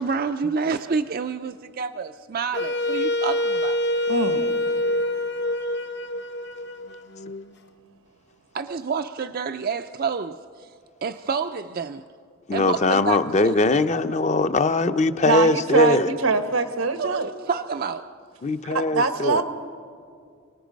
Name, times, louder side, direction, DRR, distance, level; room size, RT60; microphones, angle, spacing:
voice 1, 0.0-3.8 4.3-4.5 5.6-5.8 8.5-10.7 11.0-12.0 12.5-13.2 13.4-13.6 17.0-18.1, right 5 dB, 45° right, 8 dB, 0.4 m, -28 dB
Wind instrument woodwind instrument, 2.5-7.5, left 1 dB, 55° left, 0.9 m, -26 dB
voice 2, 4.1-4.4 15.2-17.3 18.6-19.4, right 4 dB, 90° right, 8 dB, 1.4 m, -23 dB
voice 3, 12.5-16.1 18.4-19.4, left 3 dB, 35° left, 10 dB, 0.6 m, -21 dB
29.5 x 19.0 x 5.2 m, 2.3 s
head